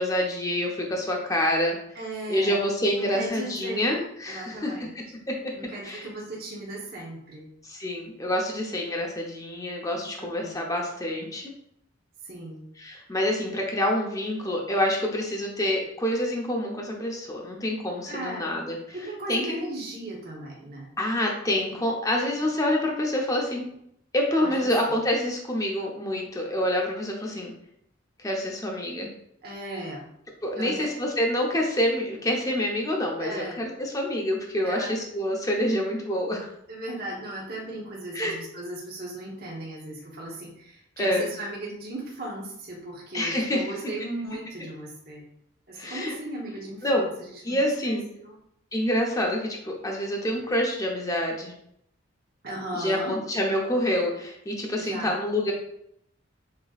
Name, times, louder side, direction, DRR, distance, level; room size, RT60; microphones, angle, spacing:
voice 1, 0.0-1.8 2.3-5.0 5.8-6.1 7.6-11.4 12.8-18.8 19.3-19.4 21.0-23.6 24.1-27.5 28.2-29.1 30.4-36.5 38.1-38.3 41.0-41.3 43.1-43.6 45.8-46.2 46.8-47.1 47.4-48.0 48.7-51.5 52.7-55.5, left 1 dB, 15° left, 0 dB, 0.8 m, -27 dB
voice 2, 1.9-2.6 3.0-3.9 4.3-4.9 5.5-7.5 10.2-10.6 12.2-12.7 18.1-18.6 18.9-20.9 24.4-24.7 29.4-30.1 30.5-30.9 32.5-32.6 33.2-33.7 34.6-34.9 36.7-45.3 45.7-48.4 52.4-53.2 54.7-55.2, right 1 dB, 50° right, -4 dB, 1.1 m, -37 dB
7.1 x 3.0 x 2.4 m, 0.74 s
head